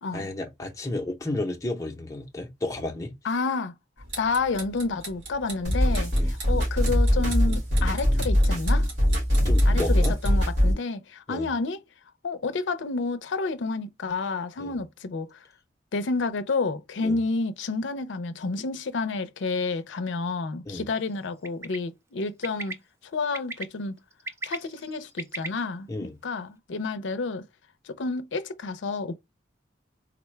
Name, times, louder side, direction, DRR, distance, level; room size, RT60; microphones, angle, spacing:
voice 1, 0.1-3.1 6.1-6.3 9.4-10.1 11.3-11.5 14.6-14.8 17.0-17.2 20.7-20.9 25.9-26.2, left 2 dB, 15° left, 0.7 m, -32 dB
voice 2, 3.2-3.7 4.2-8.9 9.7-11.8 12.2-15.4 15.9-22.8 23.1-24.0 24.4-27.4 27.8-29.2, left 3 dB, 85° left, 0.5 m, -30 dB
sound 1, 4.0-10.5, right 2 dB, 90° right, 1.9 m, -42 dB
sound 2, 5.6-10.7, equal, 70° right, 2.1 m, -22 dB
Bird, 21.4-21.8 22.4-22.7 23.3-23.6 24.1-25.5, right 2 dB, 15° right, 0.3 m, -35 dB
4.0 x 2.2 x 3.1 m
head